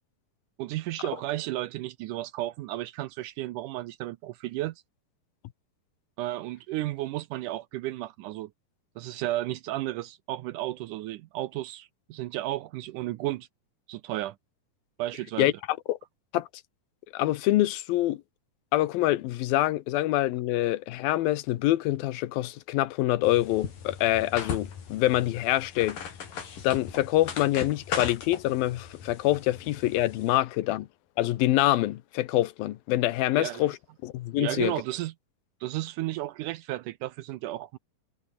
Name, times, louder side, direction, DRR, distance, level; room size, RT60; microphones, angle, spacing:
voice 1, 0.6-4.8 6.2-8.5 9.0-13.5 13.9-14.4 15.0-15.5 33.3-33.7 34.4-35.1 35.6-37.8, right 16 dB, 75° right, 2.0 m, -33 dB
voice 2, 15.4-16.0 16.3-16.5 17.1-18.2 18.7-26.0 26.6-30.9 31.2-33.8 34.0-34.7, left 15 dB, 85° left, 2.8 m, -25 dB
sound 1, 23.2-30.4, left 7 dB, 65° left, 4.9 m, -38 dB
omnidirectional pair, 4.1 m